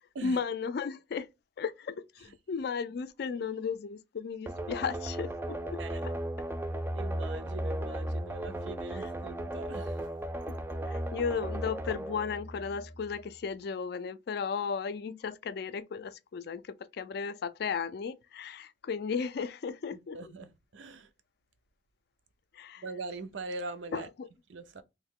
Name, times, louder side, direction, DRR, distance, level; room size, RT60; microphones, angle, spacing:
voice 1, 0.2-1.3 1.6-6.1 10.9-20.2 22.5-22.8 23.9-24.3, left 6 dB, 60° left, 0.3 m, -35 dB
sound 1, 4.5-13.1, right 1 dB, 10° right, 0.4 m, -36 dB
voice 2, 5.8-6.1 6.9-10.1 19.9-21.1 22.8-24.1 24.5-24.8, right 3 dB, 85° right, 0.5 m, -42 dB
3.1 x 2.7 x 3.5 m
head